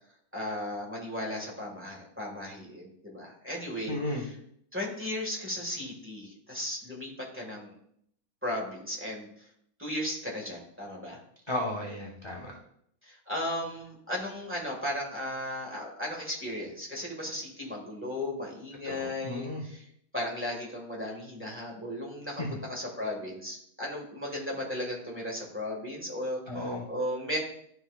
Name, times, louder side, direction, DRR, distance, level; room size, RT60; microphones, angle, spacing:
voice 1, 0.3-4.3 4.7-7.8 8.4-9.3 9.8-11.2 13.1-19.9 20.1-27.4, left 1 dB, 10° right, -2 dB, 1.5 m, -36 dB
voice 2, 3.9-4.2 11.5-12.6 18.8-19.6 22.4-22.5 26.5-26.8, left 1 dB, 25° left, -3 dB, 0.7 m, -34 dB
12.0 x 4.6 x 2.3 m, 0.70 s
omnidirectional pair, 1.6 m